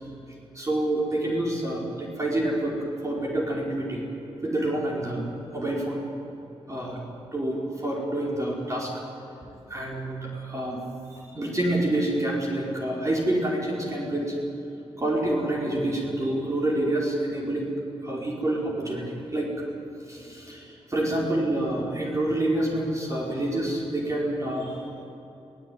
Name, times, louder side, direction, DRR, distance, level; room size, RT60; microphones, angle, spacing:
voice 1, 0.5-2.8 3.0-4.0 4.4-5.2 5.5-6.0 6.7-7.0 7.3-9.0 9.7-10.8 11.1-14.3 15.0-17.7 18.0-19.6 20.1-25.0, right 1 dB, 30° right, -3 dB, 4.9 m, -27 dB
22.0 x 18.0 x 9.5 m, 2.9 s
cardioid pair, 85°, 11 cm